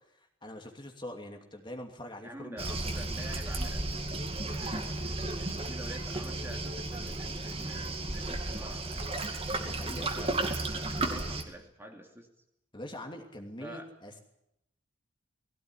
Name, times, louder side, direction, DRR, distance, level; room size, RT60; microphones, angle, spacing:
voice 1, 0.1-3.1 9.6-10.4 12.7-14.2, left 1 dB, 25° left, 3 dB, 2.8 m, -44 dB
voice 2, 2.2-4.1 4.4-9.1 10.6-10.7 10.9-12.3 13.6-13.9, right 1 dB, 10° right, 2 dB, 2.6 m, -47 dB
Waves surf, 2.6-11.4, right 2 dB, 30° right, 2.6 m, -34 dB
20.5 x 17.0 x 10.0 m, 0.81 s
head